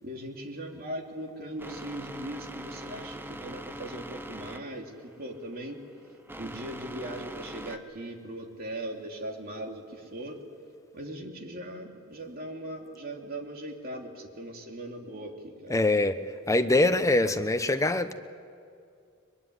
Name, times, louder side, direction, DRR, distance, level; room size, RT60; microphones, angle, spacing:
voice 1, 0.0-5.8 6.3-10.4 10.9-15.8, right 1 dB, 45° right, 2 dB, 3.1 m, -39 dB
sound 1, 1.6-7.8, right 1 dB, 10° right, 0.9 m, -42 dB
voice 2, 15.7-16.2 16.5-18.1, left 2 dB, 15° left, 9 dB, 0.9 m, -23 dB
23.5 x 23.0 x 9.9 m, 2.4 s
head